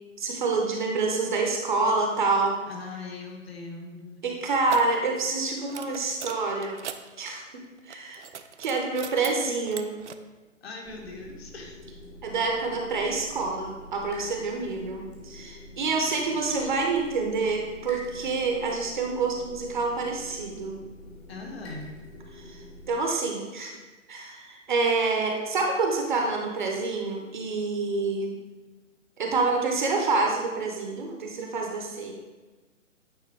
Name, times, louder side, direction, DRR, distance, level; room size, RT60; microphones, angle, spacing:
voice 1, 0.2-2.6 4.2-6.8 7.2-8.2 8.6-9.9 12.2-20.7 22.3-22.6 22.9-23.7 24.1-28.3 29.2-32.1, right 3 dB, 35° right, 1 dB, 0.8 m, -27 dB
voice 2, 2.7-4.2 10.6-11.8 14.9-15.0 21.3-21.9, left 3 dB, 50° left, 0 dB, 1.3 m, -40 dB
sound 1, 4.7-5.0 5.7-7.0 7.8-9.3 9.6-10.1, right 8 dB, 65° right, 0.5 m, -40 dB
sound 2, 10.8-23.0, left 1 dB, 20° left, 0.9 m, -46 dB
8.6 x 3.9 x 3.2 m, 1.2 s
figure-of-eight pair, 130°, 39 cm